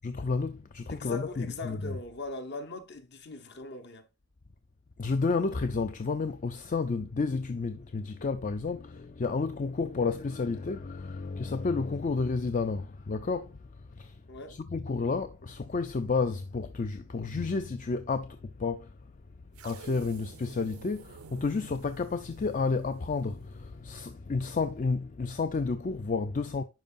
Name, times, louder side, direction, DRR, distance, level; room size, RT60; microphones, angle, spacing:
voice 1, 0.0-2.0 5.0-13.6 13.9-14.2 14.5-18.9 19.6-26.6, left 4 dB, 35° left, 0.4 m, -31 dB
voice 2, 0.9-4.1 14.3-14.6, left 3 dB, 50° left, 0.9 m, -40 dB
sound 1, 19.5-23.8, right 5 dB, 90° right, 0.6 m, -51 dB
10.5 x 4.6 x 2.5 m
head